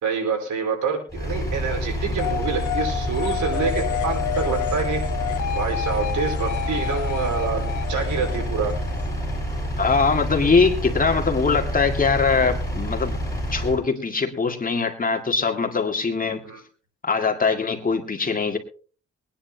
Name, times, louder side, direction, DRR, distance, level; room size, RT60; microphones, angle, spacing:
voice 1, 0.0-5.0 5.5-8.7 16.4-16.6, right 5 dB, 70° right, 2 dB, 4.6 m, -27 dB
Engine, 1.1-13.8, equal, 10° left, 6.4 m, -28 dB
sound 1, 2.2-9.7, left 12 dB, 75° left, 1.2 m, -30 dB
voice 2, 9.8-13.2 13.5-16.4 17.0-18.6, left 4 dB, 30° left, 4 dB, 2.2 m, -22 dB
23.0 x 10.0 x 2.9 m, 0.40 s
cardioid pair, 90°, 30 cm